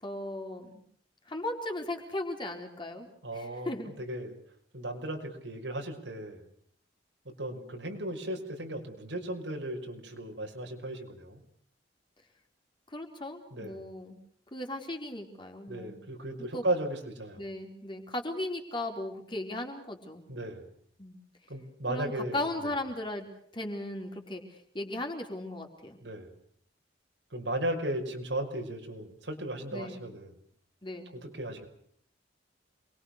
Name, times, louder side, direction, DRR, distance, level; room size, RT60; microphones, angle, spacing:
voice 1, 0.0-0.7 1.3-3.9 12.9-14.2 14.5-16.0 16.4-16.6 17.4-20.2 21.0-21.2 21.9-23.3 23.5-26.0 29.7-30.0 30.8-31.1, left 1 dB, 25° left, 3 dB, 4.2 m, -37 dB
voice 2, 3.2-4.3 4.7-6.5 7.3-11.4 13.5-13.8 15.7-17.4 20.3-20.6 21.5-22.5 26.0-26.3 27.3-30.3 31.1-31.7, right 1 dB, 80° right, 3 dB, 5.6 m, -36 dB
28.0 x 22.5 x 6.6 m, 0.64 s
head